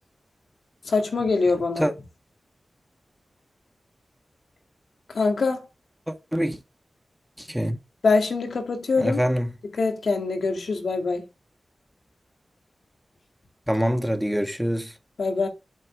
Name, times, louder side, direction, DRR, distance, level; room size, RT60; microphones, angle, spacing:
voice 1, 0.9-1.9 5.1-5.7 8.0-9.2 9.8-11.2 15.2-15.5, left 4 dB, 80° left, 2.2 m, -23 dB
voice 2, 6.1-6.6 7.4-7.8 9.0-9.5 13.7-14.9, equal, 5° right, 1.5 m, -25 dB
7.8 x 4.4 x 6.0 m
wide cardioid pair, 65°, 0 cm